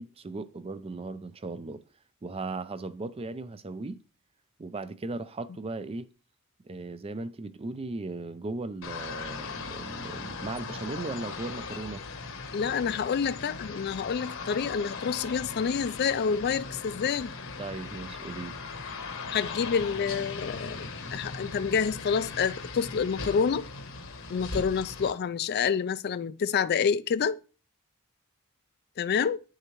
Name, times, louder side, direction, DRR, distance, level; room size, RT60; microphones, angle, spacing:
voice 1, 0.0-1.8 2.2-4.0 4.6-6.1 6.6-12.0 17.6-18.6, right 3 dB, 25° right, 0.4 m, -37 dB
sound 1, 8.8-25.1, left 4 dB, 65° left, 1.1 m, -39 dB
voice 2, 12.5-17.3 19.3-23.6 24.3-27.4 29.0-29.4, left 6 dB, 45° left, 0.4 m, -28 dB
9.4 x 6.5 x 3.0 m
head